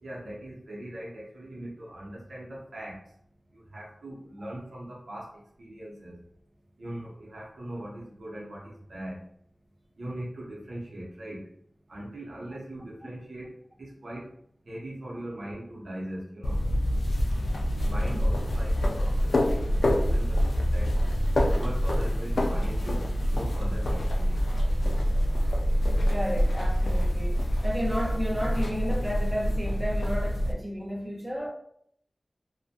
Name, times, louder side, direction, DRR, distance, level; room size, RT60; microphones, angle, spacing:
voice 1, 0.0-3.0 3.5-6.2 6.8-9.2 10.0-11.4 11.9-14.3 14.7-16.6 17.8-19.4 19.7-20.9 21.5-23.0 23.3-24.4, right 1 dB, 80° right, -5 dB, 0.7 m, -40 dB
sound 1, 16.4-30.5, equal, 90° left, 0.3 m, -26 dB
voice 2, 26.1-31.5, equal, 15° right, -4 dB, 0.9 m, -32 dB
2.5 x 2.1 x 2.6 m, 0.67 s
cardioid pair, 45°, 0 cm